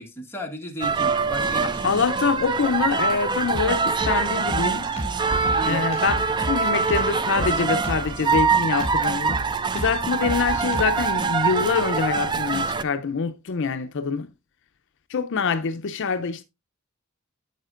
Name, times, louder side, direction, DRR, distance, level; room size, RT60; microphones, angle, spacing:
voice 1, 0.0-2.0 5.5-5.9, equal, 10° left, 1.5 m, -35 dB
sound 1, 0.8-12.8, right 4 dB, 20° right, 0.4 m, -24 dB
voice 2, 1.8-4.9 5.7-14.3 15.1-16.4, left 5 dB, 60° left, 0.5 m, -25 dB
Drum kit, 3.5-11.2, left 1 dB, 30° left, 2.1 m, -33 dB
9.3 x 7.3 x 2.4 m
head